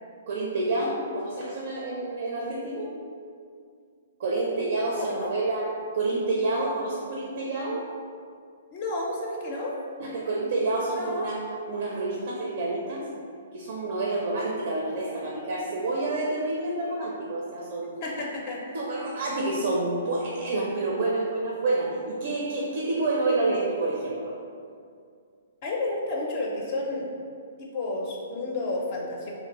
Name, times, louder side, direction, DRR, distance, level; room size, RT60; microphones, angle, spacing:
voice 1, 0.3-2.9 4.2-5.7 5.9-7.8 10.0-13.0 13.5-17.9 18.7-24.3, right 2 dB, 60° right, -3 dB, 0.4 m, -28 dB
voice 2, 5.0-5.3 8.7-9.8 10.9-11.3 18.0-18.8 25.6-27.1 27.6-29.3, left 2 dB, 45° left, -2 dB, 0.4 m, -31 dB
2.6 x 2.5 x 2.8 m, 2.2 s
hypercardioid pair, 135°, 0 cm